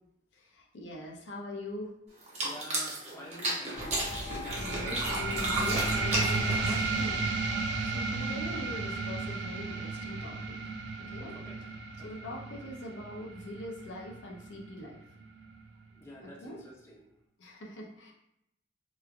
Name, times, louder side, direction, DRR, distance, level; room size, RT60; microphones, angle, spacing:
voice 1, 0.3-1.9 4.6-7.2 7.8-10.6 11.0-11.3 12.0-15.0 16.2-16.6 17.4-18.1, left 1 dB, 80° left, 0 dB, 0.5 m, -42 dB
sound 1, 2.2-7.1, right 1 dB, 35° right, 0.7 m, -33 dB
voice 2, 2.4-4.1 11.3-11.7 12.0-12.1 16.0-17.0, equal, 15° left, -3 dB, 0.4 m, -48 dB
sound 2, 3.7-9.9, left 1 dB, 50° left, 1.2 m, -43 dB
sound 3, 4.5-15.5, right 3 dB, 70° right, 0.3 m, -34 dB
3.0 x 2.2 x 2.4 m, 0.80 s
head